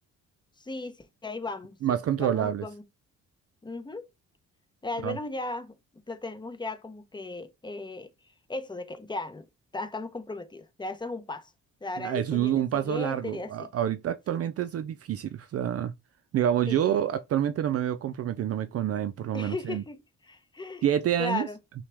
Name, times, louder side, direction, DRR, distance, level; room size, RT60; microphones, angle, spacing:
voice 1, 0.6-1.8 2.2-2.8 3.6-4.1 4.8-8.1 8.5-9.5 9.7-11.5 11.8-13.7 14.3-14.5 16.7-16.9 19.3-20.9 21.2-21.6, left 2 dB, 15° left, 0.7 m, -36 dB
voice 2, 1.8-2.6 5.0-5.2 12.0-15.9 16.3-19.8 20.8-21.5, right 10 dB, 50° right, 0.5 m, -27 dB
5.8 x 2.3 x 3.3 m
cardioid pair, 90°, 30 cm